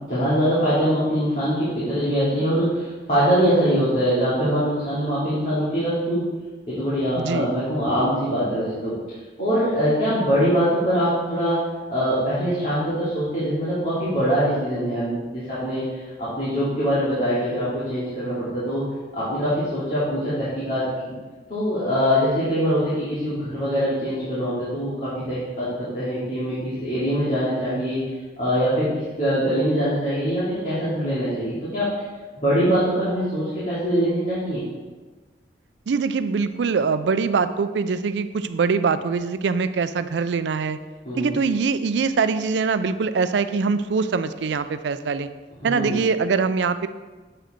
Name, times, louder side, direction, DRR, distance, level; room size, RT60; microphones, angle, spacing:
voice 1, 0.0-6.3 6.7-9.0 9.4-11.6 11.9-18.9 19.1-21.1 21.5-28.0 28.4-31.9 32.4-34.6 41.0-41.4 45.6-46.0, equal, 45° left, -11 dB, 2.6 m, -23 dB
voice 2, 7.2-7.5 35.9-40.8 41.2-45.3 45.6-46.9, right 5 dB, 80° right, 12 dB, 0.4 m, -23 dB
8.0 x 4.9 x 4.5 m, 1.3 s
head